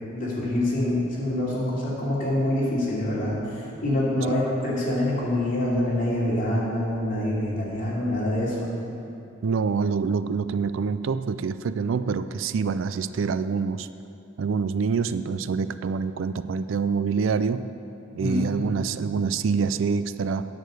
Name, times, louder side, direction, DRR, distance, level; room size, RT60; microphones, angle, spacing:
voice 1, 0.0-8.7 18.2-18.8, left 1 dB, 45° left, -7 dB, 2.9 m, -26 dB
voice 2, 9.4-13.9 14.4-17.7 18.1-20.4, right 5 dB, 75° right, 13 dB, 0.4 m, -26 dB
9.1 x 6.7 x 7.9 m, 2.7 s
head